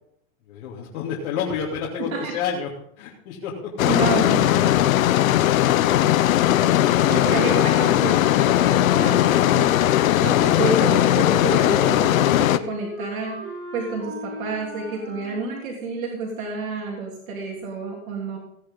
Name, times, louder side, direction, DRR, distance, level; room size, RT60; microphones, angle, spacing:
voice 1, 0.5-2.7 3.0-4.2 8.8-9.0, left 7 dB, 55° left, -4 dB, 3.0 m, -31 dB
sound 1, 3.8-12.6, left 13 dB, 80° left, 0.9 m, -18 dB
voice 2, 3.9-4.7 7.1-8.2 9.0-9.7 10.2-13.4 13.7-18.4, right 3 dB, 80° right, -1 dB, 3.5 m, -29 dB
sound 2, 6.7-15.4, equal, 35° right, 6.2 m, -36 dB
17.0 x 9.7 x 3.8 m, 0.72 s
hypercardioid pair, 125°, 41 cm